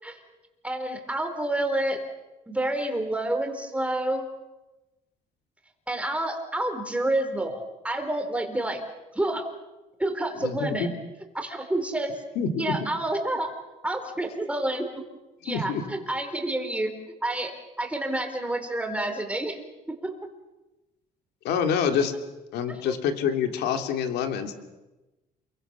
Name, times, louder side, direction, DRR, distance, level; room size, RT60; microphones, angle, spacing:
voice 1, 0.6-2.0 2.5-4.3 5.9-8.8 9.1-9.4 10.0-10.9 11.3-12.1 12.6-13.5 13.8-15.0 15.4-16.9 17.2-19.6 19.9-20.1 22.8-22.9, right 1 dB, 5° right, 5 dB, 4.3 m, -28 dB
voice 2, 10.4-10.9 12.3-12.7 15.4-15.8 21.4-22.1 22.5-24.5, left 7 dB, 80° left, 6 dB, 2.9 m, -26 dB
28.5 x 23.0 x 7.0 m, 1.1 s
cardioid pair, 110°, 17 cm